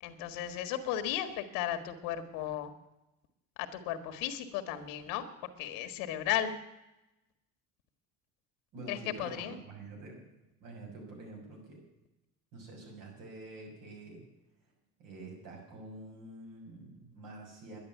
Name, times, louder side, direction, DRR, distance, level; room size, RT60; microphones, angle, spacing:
voice 1, 0.0-2.7 3.6-5.2 5.6-6.5 8.9-9.6, left 11 dB, 85° left, 9 dB, 1.6 m, -35 dB
voice 2, 8.7-10.2 10.6-11.8 12.5-14.2 15.0-17.8, right 2 dB, 70° right, 1 dB, 6.3 m, -47 dB
11.0 x 10.5 x 9.2 m, 0.95 s
cardioid pair, 125°, 33 cm